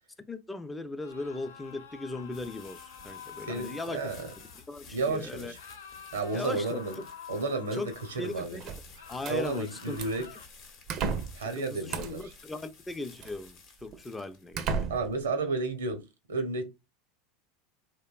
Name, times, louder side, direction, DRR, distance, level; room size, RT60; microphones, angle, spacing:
voice 1, 0.3-4.0 4.7-5.5 6.3-6.8 7.7-7.9 8.2-8.7 9.1-10.0 11.6-14.8, left 2 dB, 15° left, 0.4 m, -38 dB
sound 1, 1.0-4.7 5.5-8.5 8.9-10.5, left 7 dB, 85° left, 0.4 m, -48 dB
sound 2, 1.6-16.0, left 5 dB, 55° left, 0.8 m, -54 dB
voice 2, 3.4-4.3 4.9-5.6 6.1-7.0 7.3-8.6 9.3-10.3 11.4-12.3 14.9-16.6, right 3 dB, 85° right, 0.7 m, -32 dB
sound 3, 8.6-9.4 10.0-10.3 10.9-11.4 11.9-12.3 13.2-13.3 13.9-14.0 14.5-15.2, right 5 dB, 50° right, 0.4 m, -33 dB
2.8 x 2.1 x 2.3 m
hypercardioid pair, 85°, 0 cm